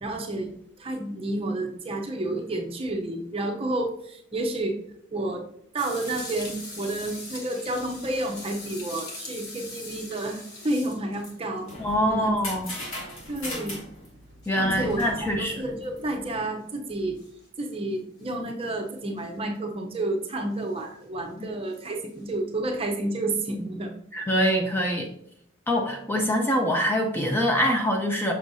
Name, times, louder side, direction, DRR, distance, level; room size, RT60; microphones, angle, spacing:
voice 1, 0.0-4.8 5.1-5.4 5.7-11.7 12.1-12.3 13.3-13.8 14.8-15.0 15.4-17.2 17.6-23.9, right 2 dB, 30° right, 3 dB, 0.7 m, -30 dB
sound 1, 5.8-11.7 13.2-13.8 14.4-14.5 15.8-15.9 17.2-17.8 18.2-18.3 19.2-19.3 20.6-20.8 21.7-21.9 24.3-24.4, left 2 dB, 55° left, 1.2 m, -41 dB
sound 2, 11.3-16.4, left 1 dB, 85° left, 2.3 m, -37 dB
voice 2, 11.8-12.7 14.5-15.6 21.4-21.5 24.1-25.1 25.7-28.3, equal, 10° left, 2 dB, 0.6 m, -24 dB
6.4 x 6.2 x 2.7 m, 0.70 s
head